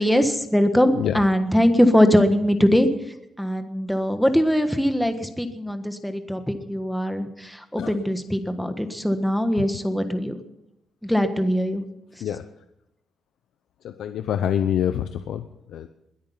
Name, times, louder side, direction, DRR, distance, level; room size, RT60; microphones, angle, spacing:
voice 1, 0.0-2.9 3.4-10.3 11.0-11.8, equal, ahead, 8 dB, 1.4 m, -21 dB
voice 2, 13.8-15.9, left 9 dB, 80° left, 9 dB, 0.7 m, -26 dB
21.5 x 8.7 x 5.7 m, 0.85 s
cardioid pair, 125°, 0 cm